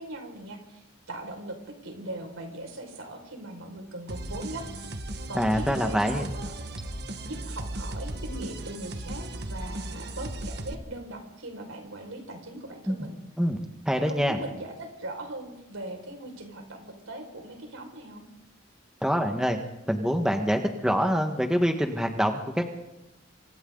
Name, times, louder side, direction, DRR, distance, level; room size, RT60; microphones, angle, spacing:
voice 1, 0.0-1.6 1.8-4.7 5.3-6.5 7.2-13.2 13.9-18.3, right 1 dB, 85° right, 3 dB, 5.6 m, -40 dB
sound 1, 4.1-10.7, right 1 dB, 50° right, 1.5 m, -36 dB
voice 2, 5.3-6.3 12.9-13.0 13.4-13.6 13.8-14.4 19.0-19.6 19.9-22.7, equal, 5° right, 4 dB, 1.5 m, -25 dB
28.0 x 25.0 x 4.0 m, 0.92 s
head